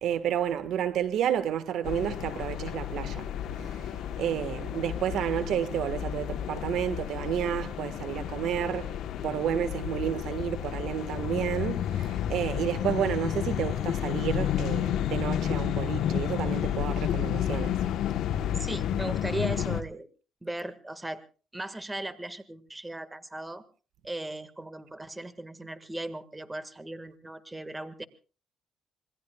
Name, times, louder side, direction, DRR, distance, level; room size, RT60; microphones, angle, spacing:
voice 1, 0.0-3.3 3.6-3.9 4.2-8.9 9.2-17.8, right 10 dB, 80° right, 1.5 m, -31 dB
sound 1, 1.8-19.8, left 10 dB, 80° left, 1.1 m, -31 dB
voice 2, 18.5-20.1 20.4-21.2 21.5-23.6 24.0-28.0, right 1 dB, 15° right, 1.7 m, -37 dB
26.5 x 21.0 x 2.3 m
cardioid pair, 90°, 0 cm